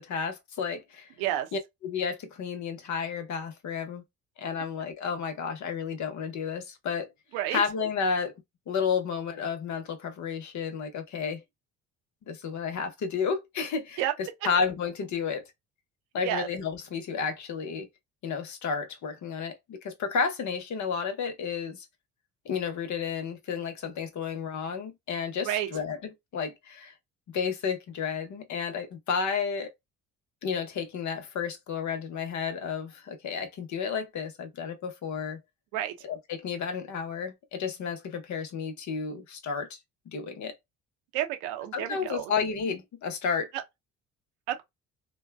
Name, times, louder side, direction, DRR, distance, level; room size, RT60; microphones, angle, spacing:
voice 1, 0.0-1.1 1.5-4.0 4.4-7.1 7.5-8.3 8.7-11.4 12.3-14.0 14.4-15.4 16.1-17.9 18.2-21.8 22.4-26.9 27.3-29.7 30.4-35.4 36.0-39.8 40.1-40.5 41.7-43.5, left 6 dB, 55° left, 0.9 m, -32 dB
voice 2, 41.1-42.3 44.5-44.6, right 12 dB, 85° right, 0.7 m, -30 dB
2.6 x 2.2 x 2.2 m
hypercardioid pair, 60°, 36 cm